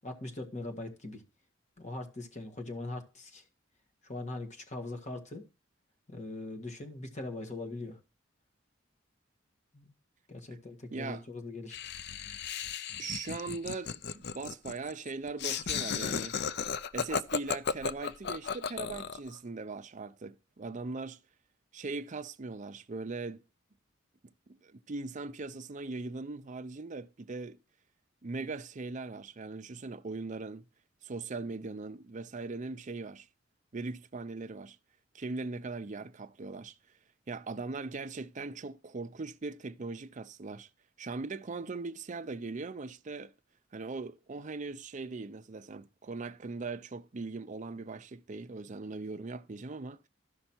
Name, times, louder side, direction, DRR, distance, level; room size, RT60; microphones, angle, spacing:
voice 1, 0.0-1.2 1.8-3.4 4.0-5.4 6.1-8.0 9.7-9.9 10.3-11.8, left 2 dB, 35° left, 1.7 m, -41 dB
voice 2, 10.9-11.2 13.0-16.4 16.9-21.2 21.7-23.4 24.5-27.6 28.2-30.6 31.0-33.3 33.7-34.8 35.1-36.8 37.3-40.7 41.0-43.3 43.7-50.0, right 3 dB, 40° right, 0.5 m, -40 dB
Laughter, 11.7-19.3, left 6 dB, 55° left, 0.5 m, -35 dB
13.0 x 5.6 x 4.4 m
head